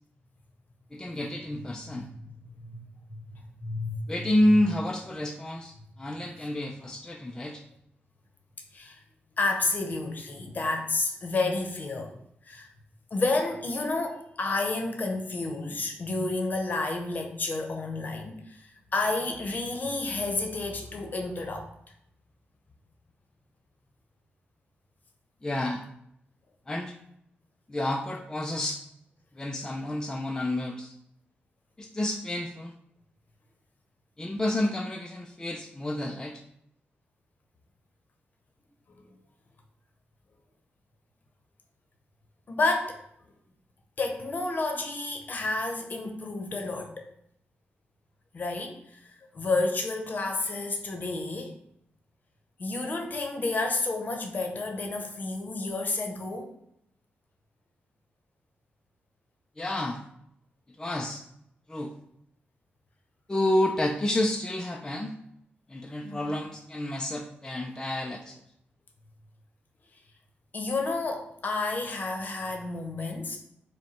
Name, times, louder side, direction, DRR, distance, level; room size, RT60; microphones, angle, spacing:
voice 1, 0.9-2.1 4.1-7.6 25.4-25.8 26.7-26.9 27.7-28.8 29.4-30.9 31.8-32.7 34.2-36.4 59.6-60.0 60.8-61.2 61.7-61.9 63.3-65.1 65.7-68.4, left 1 dB, 15° left, 2 dB, 0.4 m, -29 dB
voice 2, 1.9-2.3 2.6-2.8 3.2-4.0 4.5-4.6 8.7-9.0 9.4-12.1 12.4-12.7 13.1-21.7 38.9-39.2 42.5-43.0 44.0-47.0 48.3-49.0 49.3-51.5 52.6-56.6 66.0-66.4 70.5-73.4, left 3 dB, 45° left, 3 dB, 0.8 m, -30 dB
4.8 x 2.2 x 4.3 m, 0.74 s
cardioid pair, 85°, 4 cm